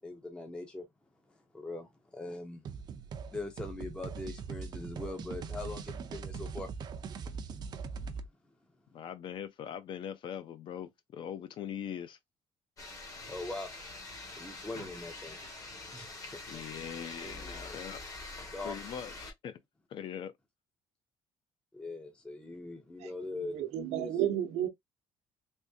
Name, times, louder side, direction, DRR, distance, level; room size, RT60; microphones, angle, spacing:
voice 1, 0.0-0.9 1.5-2.6 3.3-6.7 13.3-13.7 14.4-15.4 15.9-16.6 17.2-17.8 18.5-18.8 21.7-23.6 24.0-24.1, left 2 dB, 10° left, 0.6 m, -41 dB
sound 1, 2.6-8.3, right 5 dB, 40° right, 0.5 m, -41 dB
voice 2, 8.9-12.2 16.5-18.0 18.6-19.6 19.9-20.3, left 9 dB, 45° left, 0.6 m, -41 dB
sound 2, 12.8-19.3, left 2 dB, 30° left, 0.9 m, -45 dB
voice 3, 23.5-24.7, right 11 dB, 75° right, 0.8 m, -31 dB
3.6 x 2.6 x 2.7 m
cardioid pair, 170°, 11 cm